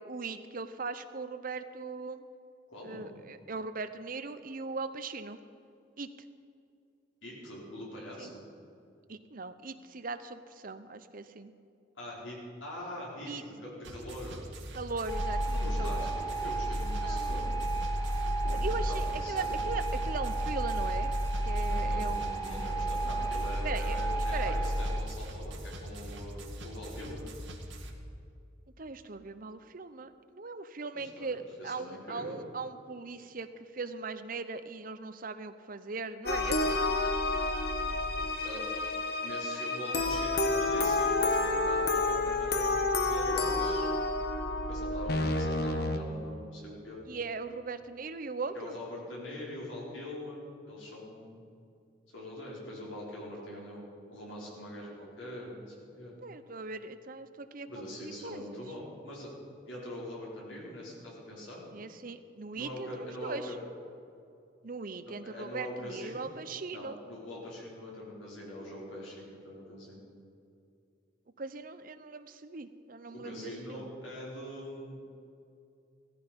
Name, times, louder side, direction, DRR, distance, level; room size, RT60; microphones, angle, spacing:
voice 1, 0.0-2.2 2.8-5.4 6.0-6.1 8.2-8.3 9.1-11.5 13.2-13.4 14.7-16.1 17.0-17.5 18.5-21.2 21.4-22.3 23.6-24.6 28.8-36.7 47.1-48.7 53.4-53.6 56.2-57.7 58.0-58.6 61.7-63.5 64.6-67.0 71.4-73.9, right 4 dB, 45° right, 11 dB, 0.7 m, -39 dB
voice 2, 2.7-3.1 7.2-8.4 12.0-14.5 15.5-17.7 18.4-19.6 21.6-27.3 30.9-32.4 38.4-38.7 39.2-43.9 44.7-47.0 48.5-51.4 52.1-56.2 57.7-59.3 59.7-61.6 62.5-63.6 65.2-66.3 66.7-70.0 73.1-75.0, left 1 dB, 80° left, -4 dB, 5.0 m, -43 dB
sound 1, 13.8-27.9, right 1 dB, 75° right, 2.0 m, -43 dB
sound 2, 15.1-25.0, right 1 dB, 20° left, 1.1 m, -31 dB
sound 3, 36.2-46.0, left 2 dB, 55° left, 1.1 m, -29 dB
17.0 x 14.0 x 5.3 m, 2.5 s
head